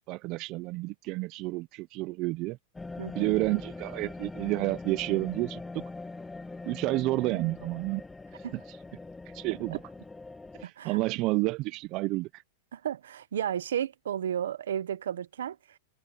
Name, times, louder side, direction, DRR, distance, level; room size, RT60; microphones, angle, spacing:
voice 1, 0.1-2.6 3.1-5.8 6.7-8.0 9.3-9.8 10.6-12.3, right 21 dB, 40° right, 0.6 m, -30 dB
sound 1, 2.7-10.6, left 3 dB, 10° left, 1.2 m, -42 dB
voice 2, 3.0-3.3 8.4-8.6 10.6-11.0 12.7-15.6, right 9 dB, 85° right, 1.0 m, -33 dB
supercardioid pair, 145°, 0 cm